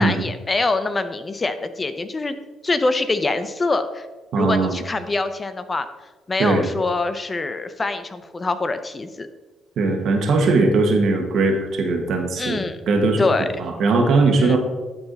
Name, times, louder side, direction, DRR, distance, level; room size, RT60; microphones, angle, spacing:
voice 1, 0.0-2.4 2.6-4.1 4.4-5.9 6.3-9.3 12.4-12.8 13.2-13.5 14.4-14.6, left 3 dB, 30° left, 11 dB, 0.6 m, -24 dB
voice 2, 4.3-4.8 6.4-6.7 9.8-13.3 13.6-14.6, right 3 dB, 70° right, 3 dB, 1.5 m, -19 dB
11.0 x 4.8 x 4.0 m, 1.2 s
cardioid pair, 90°, 0 cm